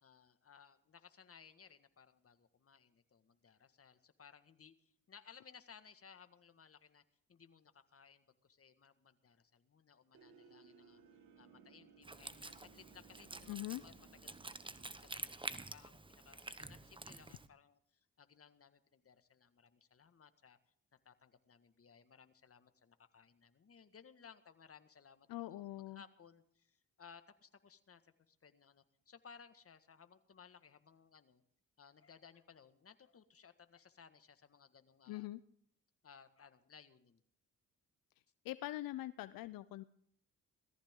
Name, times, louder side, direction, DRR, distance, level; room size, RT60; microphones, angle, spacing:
voice 1, 0.0-7.0 7.3-11.0 11.4-20.6 21.1-31.4 31.8-35.3 36.0-37.2, left 6 dB, 40° left, 10 dB, 1.7 m, -61 dB
sound 1, 10.1-16.7, right 6 dB, 90° right, 2.7 m, -64 dB
Wind instrument woodwind instrument, 12.0-17.5, right 2 dB, 15° right, 1.1 m, -49 dB
voice 2, 13.5-13.8 25.3-26.0 35.1-35.4 38.4-39.8, left 16 dB, 80° left, 15 dB, 0.6 m, -43 dB
18.0 x 14.5 x 3.8 m, 0.65 s
cardioid pair, 70°, 34 cm